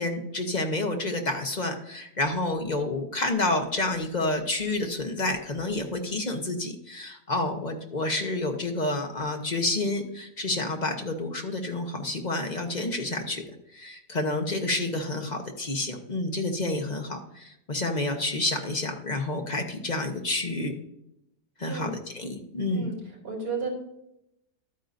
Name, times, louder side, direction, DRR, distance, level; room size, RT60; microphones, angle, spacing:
voice 1, 0.0-13.4 13.7-20.7 21.6-22.9, left 2 dB, 30° left, 3 dB, 1.0 m, -29 dB
voice 2, 21.6-22.0 22.7-23.0 23.2-23.7, right 4 dB, 85° right, -2 dB, 4.2 m, -33 dB
12.0 x 9.3 x 2.6 m, 0.80 s
omnidirectional pair, 1.7 m